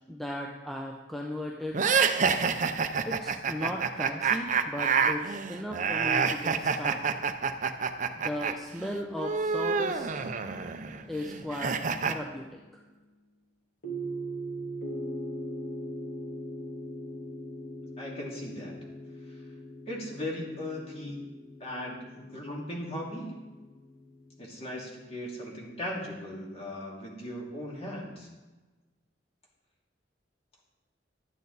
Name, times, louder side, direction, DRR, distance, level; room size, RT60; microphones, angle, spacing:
voice 1, 0.1-1.9 3.1-7.2 8.1-10.2 11.1-12.6, left 1 dB, ahead, 0 dB, 0.7 m, -37 dB
sound 1, 1.7-8.5 8.8-12.1, right 6 dB, 45° right, 0.6 m, -28 dB
sound 2, 9.4-12.3 13.8-25.1, right 1 dB, 65° left, 2.3 m, -41 dB
voice 2, 18.0-18.7 19.9-21.2 21.6-23.4 24.4-28.3, left 1 dB, 35° left, -3 dB, 2.6 m, -38 dB
11.5 x 8.8 x 4.0 m, 1.2 s
head